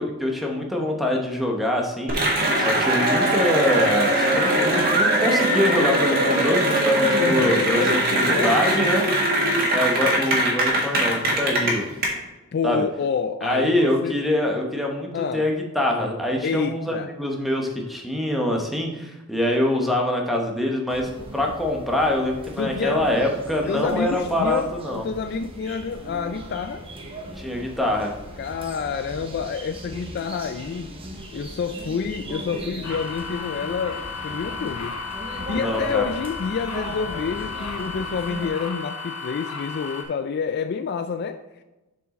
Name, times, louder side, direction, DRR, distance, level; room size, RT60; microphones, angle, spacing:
voice 1, 0.0-8.0 8.3-9.0 9.7-11.9 12.6-12.8 13.4-25.0 27.4-28.1 35.5-36.0, left 1 dB, ahead, 0.9 m, -24 dB
Cheering / Applause, 2.1-12.1, right 1 dB, 45° right, 1.7 m, -21 dB
voice 2, 7.2-8.6 12.5-14.2 15.1-15.5 16.4-17.2 22.6-23.1 23.7-26.9 28.4-31.0 31.3-35.0 35.3-41.6, left 6 dB, 50° left, 0.3 m, -28 dB
sound 1, 20.9-38.5, right 1 dB, 25° right, 1.0 m, -38 dB
sound 2, 32.8-40.0, left 4 dB, 85° left, 1.1 m, -34 dB
7.1 x 4.7 x 4.2 m
head